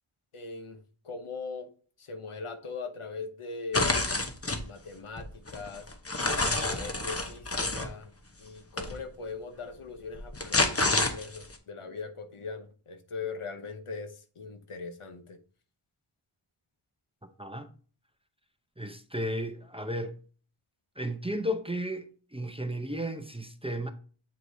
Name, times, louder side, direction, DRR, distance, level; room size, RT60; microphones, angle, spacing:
voice 1, 0.3-0.8 1.1-1.7 2.1-3.9 4.7-5.3 5.5-5.8 6.4-7.5 7.7-8.1 8.4-14.1 14.4-15.4, left 4 dB, 80° left, 0.9 m, -40 dB
sound 1, 3.7-4.6 5.2-7.9 8.8-8.9 10.1-11.5, left 2 dB, 30° left, 0.9 m, -28 dB
voice 2, 17.4-17.7 18.8-20.1 21.0-23.9, equal, 10° right, 0.6 m, -34 dB
8.2 x 4.6 x 2.7 m
wide cardioid pair, 50°, 50 cm